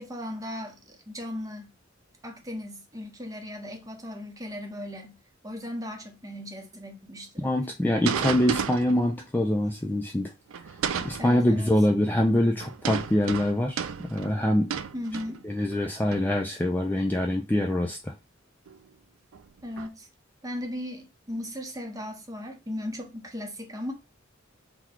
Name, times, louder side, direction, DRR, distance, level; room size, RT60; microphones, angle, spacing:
voice 1, 0.0-1.7 2.2-5.2 5.4-7.6 11.2-11.7 14.9-15.4 19.6-20.1 20.4-23.9, left 1 dB, 15° right, 0.8 m, -37 dB
voice 2, 7.4-10.3 11.0-13.8 14.1-14.7 15.4-18.1, left 1 dB, 10° left, 0.4 m, -24 dB
sound 1, 8.0-9.1 10.5-11.3 12.6-15.7 16.1-16.4 17.6-17.7 18.7-18.8 19.3-19.9, right 7 dB, 80° right, 0.4 m, -32 dB
4.0 x 2.3 x 4.4 m
head